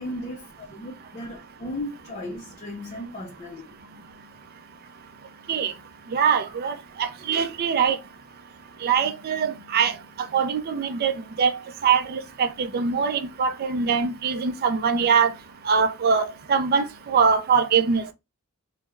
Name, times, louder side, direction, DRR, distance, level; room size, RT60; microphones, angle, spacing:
voice 1, 0.0-3.8, left 1 dB, 35° left, 0.5 m, -36 dB
voice 2, 6.1-8.0 8.8-9.9 10.3-11.5 11.8-15.3 15.7-18.1, right 6 dB, 45° right, 0.4 m, -23 dB
3.4 x 2.0 x 3.2 m
head